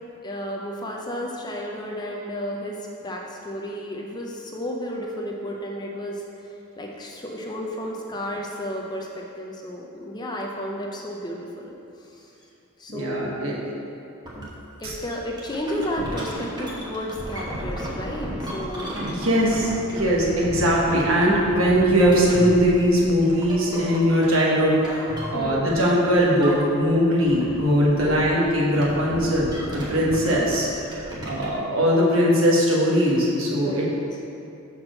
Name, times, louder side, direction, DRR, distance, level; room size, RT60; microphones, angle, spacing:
voice 1, 0.2-11.7 12.0-12.3 12.8-13.3 14.8-19.1 25.3-25.8 28.0-28.2 33.5-34.2, equal, 20° left, -1 dB, 0.5 m, -32 dB
voice 2, 12.9-13.6 14.8-14.9 19.1-33.9, equal, 65° right, -4 dB, 1.4 m, -20 dB
sound 1, 14.3-14.5 14.8-25.9 26.2-27.0 27.2-31.6, equal, 20° right, 1.0 m, -34 dB
6.1 x 4.4 x 6.4 m, 2.7 s
head